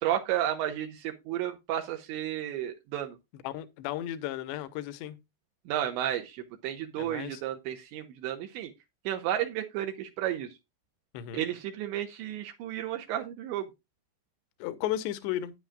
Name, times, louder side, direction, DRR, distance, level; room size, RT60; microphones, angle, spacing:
voice 1, 0.0-3.2 5.7-8.7 9.0-10.5 11.3-13.7, right 11 dB, 80° right, 3.4 m, -32 dB
voice 2, 3.3-5.2 7.0-7.4 11.1-11.5 14.6-15.5, left 12 dB, 80° left, 3.1 m, -34 dB
12.0 x 10.0 x 2.4 m
omnidirectional pair, 5.1 m